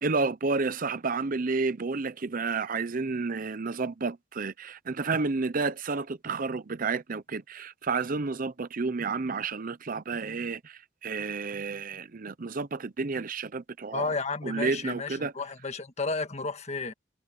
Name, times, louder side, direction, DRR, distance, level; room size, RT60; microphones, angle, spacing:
voice 1, 0.0-14.1 14.4-15.3, right 4 dB, 45° right, 0.7 m, -31 dB
voice 2, 13.9-16.9, left 3 dB, 35° left, 1.6 m, -32 dB
head